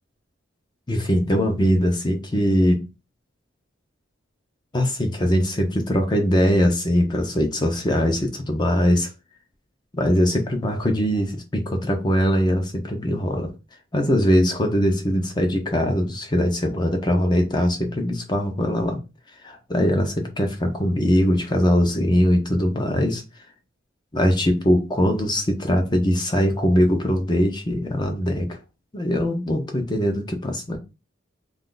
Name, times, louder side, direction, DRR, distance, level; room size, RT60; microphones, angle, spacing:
voice 1, 0.9-2.9 4.7-9.1 9.9-13.5 13.9-19.0 19.4-23.2 24.1-28.6 28.9-30.8, equal, 20° left, 0.6 m, -21 dB
2.4 x 2.4 x 3.7 m
head